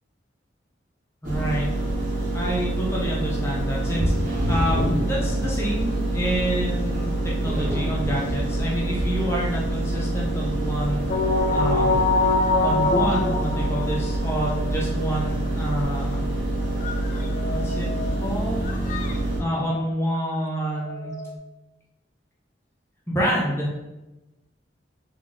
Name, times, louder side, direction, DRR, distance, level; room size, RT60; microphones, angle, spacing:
voice 1, 1.2-1.7 2.3-12.0 12.6-16.2 17.5-17.9 18.2-18.8 19.4-21.2 23.1-23.8, right 1 dB, 15° left, -4 dB, 0.8 m, -28 dB
sound 1, 1.2-19.4, right 1 dB, 50° right, 1.3 m, -26 dB
sound 2, 11.1-14.5 14.9-15.0 16.8-18.3 18.6-19.2 19.7-20.0 20.6-21.3, left 3 dB, 45° left, 0.4 m, -25 dB
3.7 x 3.3 x 3.9 m, 1.0 s
head